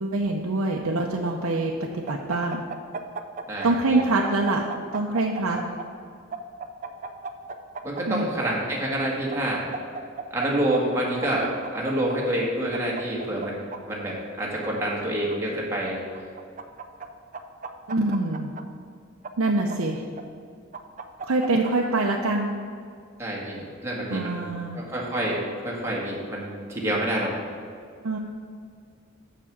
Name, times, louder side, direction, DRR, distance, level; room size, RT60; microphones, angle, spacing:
voice 1, 0.0-2.6 3.6-4.7 4.9-5.6 8.1-8.3 17.9-18.5 19.4-20.0 21.2-22.5 24.1-24.8 28.0-28.2, right 2 dB, 80° right, -1 dB, 0.7 m, -25 dB
sound 1, 2.1-3.7 4.0-5.9 6.3-8.5 9.3-10.5 10.7-10.8 11.2-12.2 12.7-13.8 14.4-15.4 16.1-17.1 17.3-18.6 19.2-20.2 20.7-21.7, right 5 dB, 35° right, 0.5 m, -35 dB
voice 2, 3.5-4.0 7.8-9.6 10.3-13.6 13.8-16.0 23.2-24.5 24.7-27.3, right 1 dB, 10° right, -4 dB, 1.7 m, -27 dB
7.0 x 6.0 x 7.2 m, 2.2 s
head